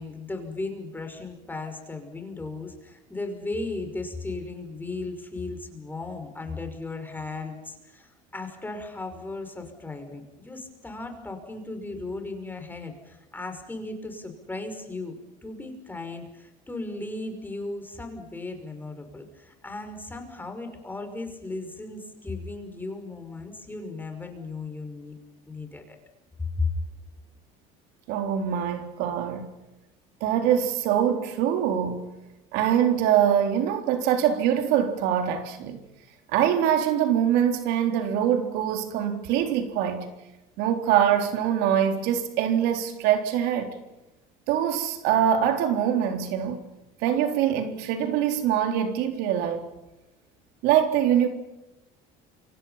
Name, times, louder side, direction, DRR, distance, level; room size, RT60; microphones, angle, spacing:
voice 1, 0.0-25.2 25.5-26.0 26.6-26.7, left 3 dB, 10° left, 5.8 m, -36 dB
voice 2, 28.1-29.5 30.2-32.1 32.5-35.8 36.3-40.1 40.6-43.7 44.5-46.6 47.0-49.7 50.6-51.3, right 9 dB, 75° right, 3.8 m, -23 dB
29.0 x 26.0 x 5.8 m
cardioid pair, 115°, 17 cm